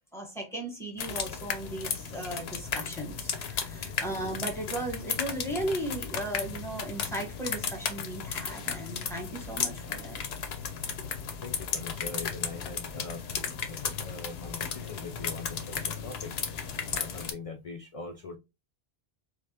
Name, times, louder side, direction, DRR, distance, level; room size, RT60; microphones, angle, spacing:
voice 1, 0.1-10.2, right 1 dB, 5° left, 1.1 m, -36 dB
sound 1, 1.0-17.3, left 6 dB, 80° left, 0.9 m, -35 dB
voice 2, 3.7-4.0 11.4-13.3 13.7-18.4, left 3 dB, 55° left, 0.4 m, -42 dB
5.0 x 2.0 x 2.7 m
omnidirectional pair, 1.0 m